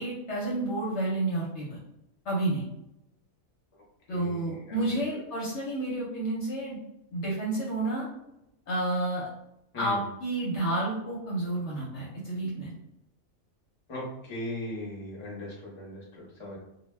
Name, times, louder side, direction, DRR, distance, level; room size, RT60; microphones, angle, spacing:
voice 1, 0.0-1.8 2.2-2.6 4.1-6.8 7.1-8.1 8.7-9.3 9.7-12.7, right 2 dB, 60° left, -4 dB, 0.9 m, -30 dB
voice 2, 4.1-4.9 9.7-10.0 13.9-16.6, left 1 dB, 25° left, -4 dB, 0.7 m, -38 dB
2.4 x 2.1 x 3.2 m, 0.84 s
omnidirectional pair, 1.4 m